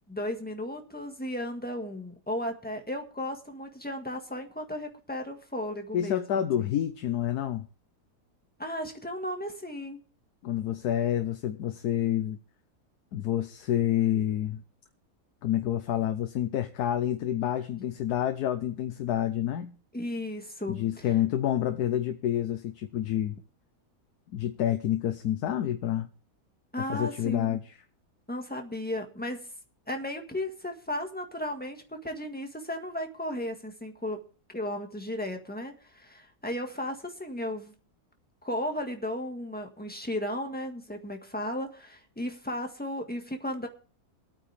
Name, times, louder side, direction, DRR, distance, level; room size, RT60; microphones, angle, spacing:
voice 1, 0.1-6.3 8.6-10.0 19.9-21.1 26.7-27.6 28.3-29.4 29.9-34.2 34.5-37.7 38.4-43.7, left 1 dB, 5° left, 3 dB, 1.6 m, -35 dB
voice 2, 5.9-7.7 10.4-12.4 13.1-14.6 15.4-19.7 20.7-23.4 24.3-26.1 26.8-27.8, left 11 dB, 75° left, 8 dB, 1.3 m, -28 dB
23.5 x 9.0 x 3.4 m, 0.38 s
omnidirectional pair, 1.7 m